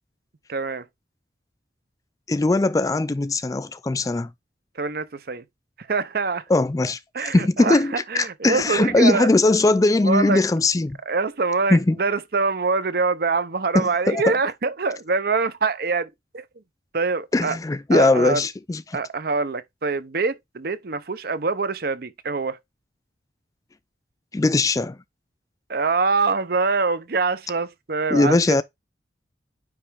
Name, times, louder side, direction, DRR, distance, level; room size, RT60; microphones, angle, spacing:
voice 1, 0.5-0.8 4.8-5.4 5.8-6.4 7.1-9.3 10.0-10.4 11.1-16.4 16.9-17.6 17.9-18.4 18.9-22.6 25.7-28.6, right 4 dB, 55° right, 0.7 m, -24 dB
voice 2, 2.3-4.3 6.5-11.0 11.7-12.0 13.7-14.3 17.3-19.0 24.3-25.0 28.1-28.6, left 2 dB, 20° left, 0.3 m, -20 dB
9.6 x 3.2 x 3.4 m
head